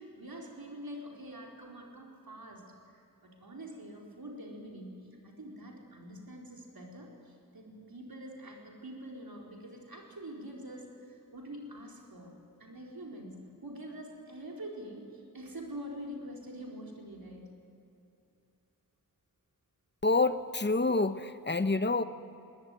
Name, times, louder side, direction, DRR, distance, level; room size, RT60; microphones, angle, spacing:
voice 1, 0.0-12.3 12.6-17.5, right 1 dB, 80° right, -1 dB, 4.3 m, -45 dB
voice 2, 20.0-22.0, left 3 dB, 30° left, 11 dB, 1.0 m, -27 dB
21.0 x 19.0 x 9.2 m, 2.7 s
wide cardioid pair, 50°, 36 cm